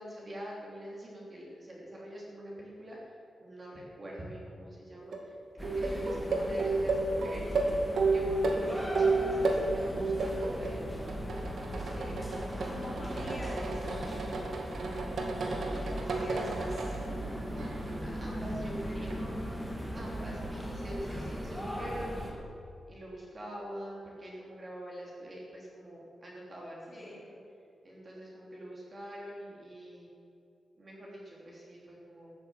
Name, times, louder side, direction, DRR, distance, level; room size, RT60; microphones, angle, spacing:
voice 1, 0.0-7.6 8.0-10.9 11.9-12.1 12.5-13.0 14.8-15.9 16.9-19.2 19.9-22.4 22.9-27.1 27.8-30.1 30.8-32.3, equal, 30° right, -4 dB, 3.0 m, -44 dB
sound 1, 5.0-5.2 5.6-9.6 10.0-10.8 11.1-17.0 17.6-18.0 19.1-19.2, right 3 dB, 65° right, 1.9 m, -32 dB
sound 2, 5.6-22.3, equal, ahead, 2.0 m, -38 dB
voice 2, 8.9-10.0 11.8-12.2 12.7-14.3 15.9-17.0 26.9-27.2, left 1 dB, 20° left, -5 dB, 4.0 m, -45 dB
13.5 x 9.1 x 8.9 m, 2.6 s
wide cardioid pair, 175°, 0 cm